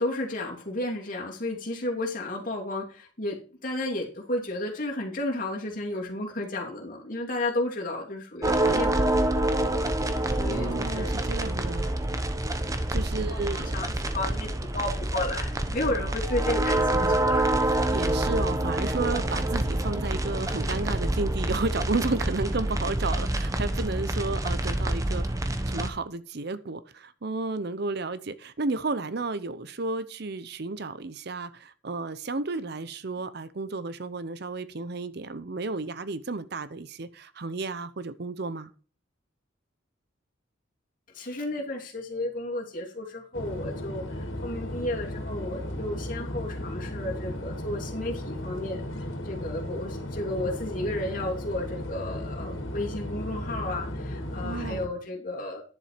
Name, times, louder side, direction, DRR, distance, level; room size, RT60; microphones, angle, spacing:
voice 1, 0.0-9.0 9.5-11.2 13.3-17.5 41.1-44.0 44.4-48.8 49.2-55.6, left 1 dB, 45° left, 3.0 m, -33 dB
sound 1, 8.4-25.9, right 1 dB, 15° right, 1.0 m, -27 dB
voice 2, 10.5-11.9 12.9-13.8 15.9-16.1 17.9-25.3 25.7-38.7 54.4-54.8, right 3 dB, 55° right, 0.7 m, -32 dB
sound 2, 43.3-54.9, left 1 dB, 85° left, 2.5 m, -35 dB
10.5 x 7.1 x 5.0 m
head